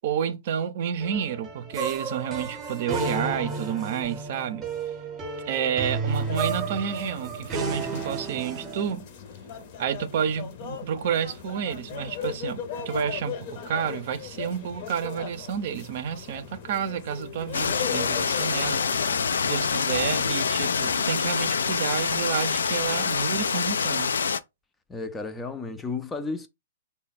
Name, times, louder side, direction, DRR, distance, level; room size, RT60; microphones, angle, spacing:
voice 1, 0.0-4.6 5.5-9.1 9.8-18.8 19.4-24.2, right 8 dB, 55° right, 0.5 m, -30 dB
sound 1, 1.0-8.9, right 4 dB, 20° right, 0.8 m, -32 dB
sound 2, 6.1-20.9, left 8 dB, 45° left, 0.7 m, -39 dB
sound 3, 17.5-24.4, left 6 dB, 85° left, 0.3 m, -26 dB
voice 2, 24.9-26.5, left 3 dB, 10° left, 0.4 m, -33 dB
3.3 x 2.2 x 3.9 m
hypercardioid pair, 135°, 0 cm